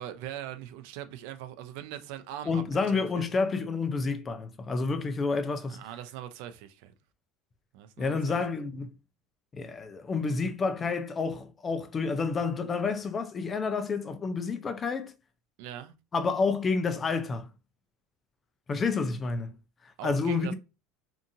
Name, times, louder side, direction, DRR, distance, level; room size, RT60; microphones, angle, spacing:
voice 1, 0.0-3.2 5.7-6.9 7.7-8.4 15.6-15.9 20.0-20.5, right 11 dB, 70° right, 0.4 m, -41 dB
voice 2, 2.5-5.8 8.0-8.9 9.5-15.1 16.1-17.5 18.7-19.6 20.0-20.5, left 4 dB, 25° left, 0.4 m, -29 dB
2.7 x 2.5 x 2.5 m
supercardioid pair, 135°, 0 cm